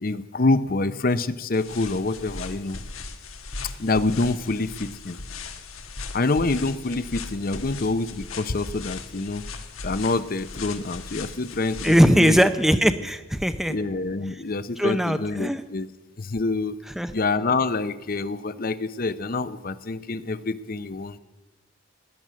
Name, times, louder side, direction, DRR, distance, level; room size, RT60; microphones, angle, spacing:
voice 1, 0.0-2.8 3.8-5.2 6.1-9.4 9.8-12.5 13.7-15.9 16.2-16.7 17.1-21.2, left 3 dB, 45° left, 14 dB, 0.6 m, -26 dB
sound 1, 1.5-12.2, left 4 dB, 90° left, 1.6 m, -38 dB
voice 2, 11.8-13.8 14.3-14.4 14.8-15.6 17.0-17.1, equal, ahead, 10 dB, 0.5 m, -20 dB
18.0 x 10.5 x 7.4 m, 1.1 s
head